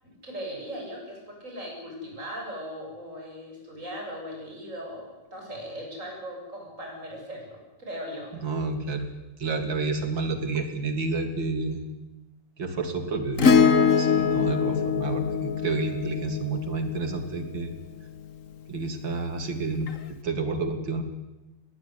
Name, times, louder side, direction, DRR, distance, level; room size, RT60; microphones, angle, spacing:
voice 1, 0.0-8.3, equal, 35° right, -1 dB, 8.5 m, -38 dB
voice 2, 8.4-9.1 9.4-11.9 12.6-17.7 18.7-21.0, right 3 dB, 60° right, 7 dB, 3.5 m, -30 dB
Acoustic guitar / Strum, 13.4-18.0 19.9-20.0, left 6 dB, 40° left, 1.5 m, -23 dB
21.5 x 19.0 x 9.8 m, 1.0 s
omnidirectional pair, 2.4 m